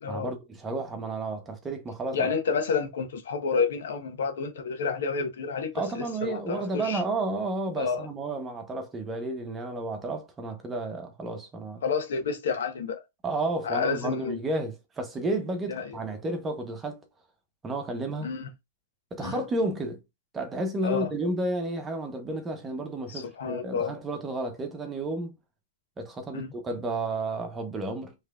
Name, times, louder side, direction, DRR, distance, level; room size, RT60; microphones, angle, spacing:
voice 1, 0.1-2.3 5.7-11.8 13.2-17.0 17.6-18.3 19.1-20.0 20.3-25.4 26.0-28.1, right 2 dB, 15° right, 1.1 m, -32 dB
voice 2, 2.1-7.0 7.8-8.1 11.8-13.0 13.6-14.4 15.7-16.0 18.2-18.5 19.2-19.4 20.8-21.1 23.1-23.9 26.3-26.5, left 5 dB, 75° left, 1.3 m, -30 dB
4.8 x 3.3 x 2.5 m
hypercardioid pair, 125°, 0 cm